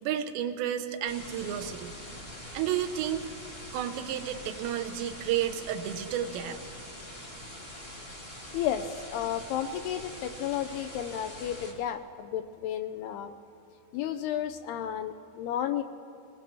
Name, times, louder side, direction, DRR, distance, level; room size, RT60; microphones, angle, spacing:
voice 1, 0.0-1.9 2.5-3.2 3.7-6.6, right 10 dB, 90° right, 6 dB, 3.1 m, -31 dB
sound 1, 1.0-11.7, equal, 15° left, 2.2 m, -44 dB
voice 2, 8.5-13.3 13.9-15.8, left 10 dB, 80° left, 9 dB, 2.4 m, -32 dB
22.0 x 19.5 x 3.1 m, 2.8 s
omnidirectional pair, 5.0 m